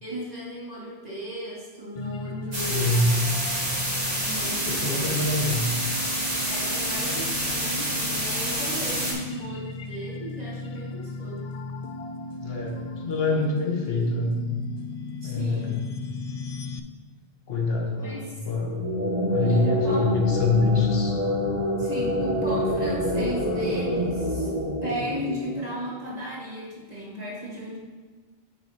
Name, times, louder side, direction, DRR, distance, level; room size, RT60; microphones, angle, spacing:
voice 1, 0.0-3.2 4.2-5.2 6.4-11.5 15.2-15.8 18.0-18.3 19.4-20.4 21.8-24.5 24.8-27.8, equal, 40° right, -6 dB, 2.0 m, -35 dB
sound 1, 2.0-16.8, left 3 dB, 55° left, 0.4 m, -36 dB
sound 2, 2.5-9.1, right 1 dB, 55° right, 2.4 m, -28 dB
voice 2, 2.6-3.1 4.6-5.6 12.4-14.4 15.2-15.8 17.5-18.7 19.3-21.2, left 3 dB, 70° left, 0 dB, 1.3 m, -25 dB
sound 3, 18.6-26.0, equal, 15° right, 1.2 m, -27 dB
9.7 x 6.8 x 2.8 m, 1.3 s
omnidirectional pair, 1.1 m